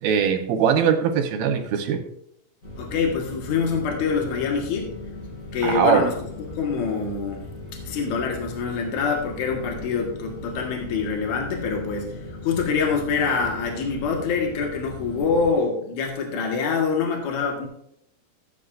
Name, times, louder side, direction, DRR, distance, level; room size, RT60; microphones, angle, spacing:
voice 1, 0.0-2.0 5.6-6.1, right 7 dB, 80° right, 4 dB, 3.0 m, -21 dB
sound 1, 2.6-15.5, left 2 dB, 25° left, 2.4 m, -38 dB
voice 2, 2.8-4.9 5.5-6.1 6.6-7.4 7.8-12.1 12.4-17.7, left 5 dB, 60° left, 1 dB, 2.8 m, -25 dB
15.5 x 9.6 x 2.6 m, 0.73 s
omnidirectional pair, 4.2 m